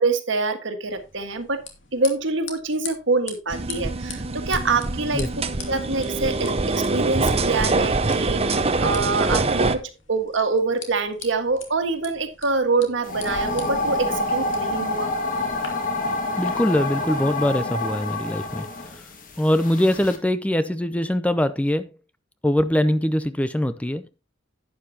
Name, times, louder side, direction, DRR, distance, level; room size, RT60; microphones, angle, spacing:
voice 1, 0.0-1.6 1.9-5.3 5.7-9.8 10.1-15.1, right 3 dB, 70° right, 1.6 m, -25 dB
sound 1, 0.8-15.7, left 7 dB, 75° left, 2.4 m, -43 dB
sound 2, 3.5-9.8, right 3 dB, 30° right, 0.8 m, -24 dB
sound 3, 13.0-20.2, left 2 dB, 45° left, 1.8 m, -27 dB
voice 2, 16.4-18.7 19.4-21.9 22.4-24.0, left 1 dB, 5° left, 0.5 m, -22 dB
11.5 x 9.5 x 2.8 m
head